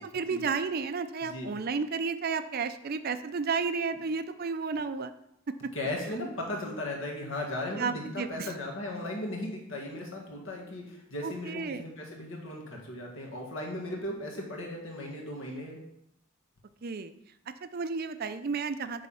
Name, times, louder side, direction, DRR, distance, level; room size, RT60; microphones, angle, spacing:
voice 1, 0.0-5.1 5.5-5.7 7.8-8.5 11.2-11.8 16.8-17.1 17.5-19.1, right 5 dB, 45° right, 11 dB, 0.5 m, -32 dB
voice 2, 1.2-1.5 5.7-15.8, left 1 dB, 65° left, -1 dB, 1.9 m, -37 dB
9.5 x 3.6 x 5.6 m, 0.78 s
head